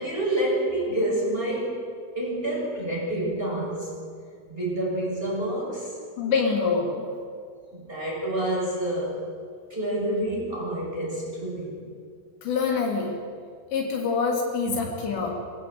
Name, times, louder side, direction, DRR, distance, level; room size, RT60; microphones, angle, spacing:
voice 1, 0.0-1.8 2.1-4.0 4.5-5.9 7.7-9.2 9.7-11.9 14.7-14.8, right 1 dB, 10° right, -4 dB, 6.6 m, -28 dB
voice 2, 6.2-7.0 12.4-13.1 13.7-15.3, left 5 dB, 75° left, -1 dB, 5.3 m, -25 dB
25.0 x 16.5 x 8.1 m, 2.1 s
omnidirectional pair, 5.1 m